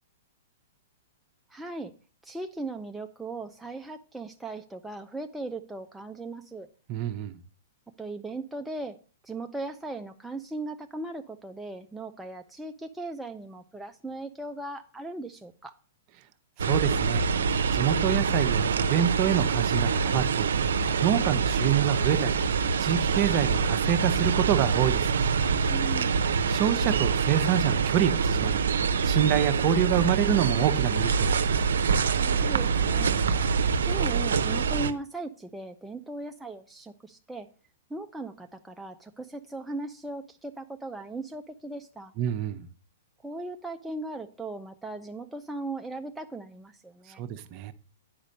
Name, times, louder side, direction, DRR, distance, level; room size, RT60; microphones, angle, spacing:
voice 1, 1.5-1.9 2.2-6.7 8.0-9.0 9.2-15.8 25.7-26.1 32.1-33.2 33.8-37.5 37.9-42.1 43.2-47.2, right 2 dB, 5° right, 0.5 m, -38 dB
voice 2, 6.9-7.3 16.6-17.2 17.7-20.5 21.0-22.4 22.8-25.2 26.5-28.6 29.0-31.4 42.2-42.7 47.2-47.7, right 10 dB, 40° right, 0.7 m, -26 dB
sound 1, 16.6-34.9, right 5 dB, 80° right, 0.6 m, -25 dB
sound 2, 25.8-33.6, right 8 dB, 60° right, 1.0 m, -44 dB
8.7 x 5.2 x 5.2 m
hypercardioid pair, 130°, 0 cm